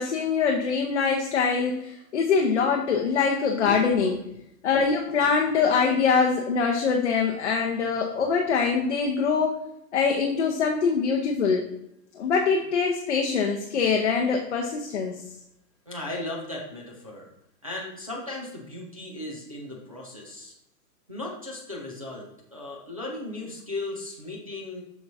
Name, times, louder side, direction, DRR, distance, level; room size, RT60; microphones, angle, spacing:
voice 1, 0.0-4.2 4.6-9.5 9.9-11.6 12.1-15.2, left 5 dB, 45° left, 1 dB, 0.7 m, -23 dB
voice 2, 15.9-17.3 17.6-20.5 21.1-24.8, left 2 dB, 25° right, -4 dB, 0.5 m, -36 dB
7.3 x 6.0 x 2.6 m, 0.83 s
hypercardioid pair, 175°, 49 cm